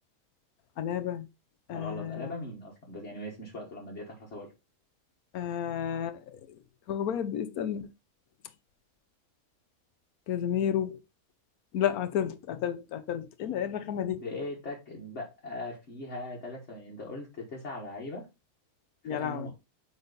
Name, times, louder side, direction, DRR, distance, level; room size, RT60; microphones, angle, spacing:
voice 1, 0.8-1.3 1.7-2.3 5.3-6.6 6.9-7.9 10.3-11.0 11.7-14.2 19.0-19.5, left 9 dB, 85° left, 1.3 m, -31 dB
voice 2, 1.7-4.5 13.9-18.3 19.0-19.5, left 2 dB, 50° left, 1.8 m, -40 dB
8.1 x 3.7 x 4.0 m
omnidirectional pair, 1.5 m